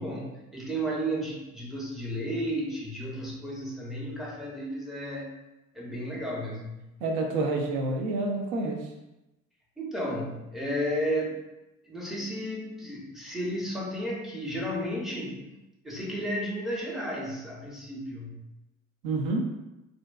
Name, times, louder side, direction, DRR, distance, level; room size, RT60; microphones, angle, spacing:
voice 1, 0.0-5.3 5.7-6.8 9.8-11.4 11.8-15.4 15.8-18.4, equal, ahead, -4 dB, 0.6 m, -33 dB
voice 2, 7.0-8.9 19.0-19.4, right 2 dB, 60° right, 2 dB, 0.6 m, -28 dB
2.6 x 2.1 x 2.2 m, 0.95 s
figure-of-eight pair, 55°, 42 cm